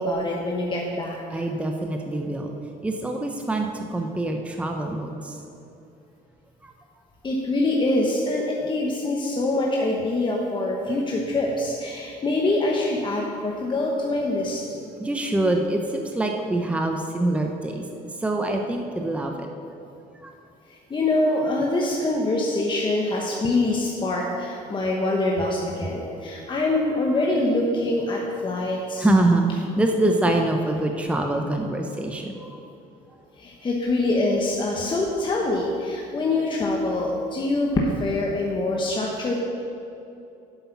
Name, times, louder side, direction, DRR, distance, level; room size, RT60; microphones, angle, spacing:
voice 1, 0.0-1.4 7.2-14.9 20.7-29.1 33.4-39.4, left 2 dB, 30° left, -2 dB, 1.1 m, -24 dB
voice 2, 1.3-2.5 2.8-3.7 3.9-5.1 15.0-17.8 18.2-19.3 29.0-32.5, right 2 dB, 5° right, 3 dB, 0.7 m, -24 dB
8.1 x 8.0 x 5.9 m, 2.7 s
cardioid pair, 110°, 17 cm